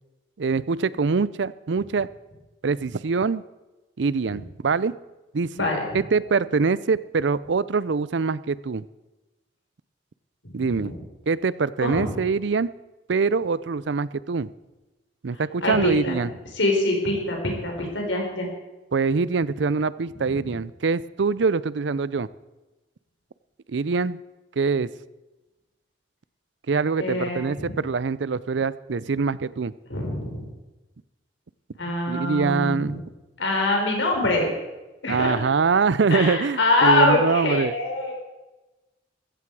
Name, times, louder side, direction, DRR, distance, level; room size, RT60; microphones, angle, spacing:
voice 1, 0.4-2.1 2.6-3.4 4.0-4.9 5.3-5.7 5.9-8.8 10.5-10.9 11.3-12.7 13.1-14.5 15.2-16.3 18.9-22.3 23.7-24.2 24.6-24.9 26.7-29.7 32.1-33.0 35.1-37.7, right 4 dB, 75° right, 18 dB, 0.5 m, -24 dB
voice 2, 10.4-11.0 11.8-12.1 15.3-16.2 16.5-18.5 27.0-27.8 29.9-30.5 31.8-33.0 33.4-34.5 35.0-35.4 36.1-38.1, left 2 dB, 85° left, 1 dB, 4.5 m, -24 dB
15.0 x 14.5 x 4.8 m, 1.1 s
head